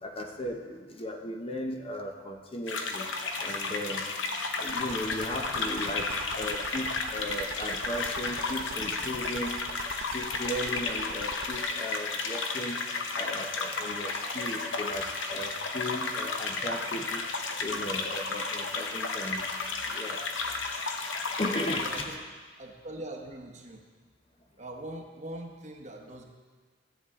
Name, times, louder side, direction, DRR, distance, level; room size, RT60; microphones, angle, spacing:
voice 1, 0.0-3.1 3.4-4.1 4.6-9.6 10.1-12.8 13.1-17.2 17.6-19.5 19.9-20.2 21.4-21.9, left 1 dB, 30° left, 2 dB, 0.8 m, -36 dB
sound 1, 2.7-22.1, left 3 dB, 75° left, 0.9 m, -33 dB
sound 2, 4.7-11.6, right 6 dB, 75° right, 0.4 m, -42 dB
voice 2, 21.8-22.2 22.6-23.8 24.6-26.2, right 1 dB, 35° right, 2 dB, 1.0 m, -42 dB
14.0 x 8.3 x 3.7 m, 1.5 s
head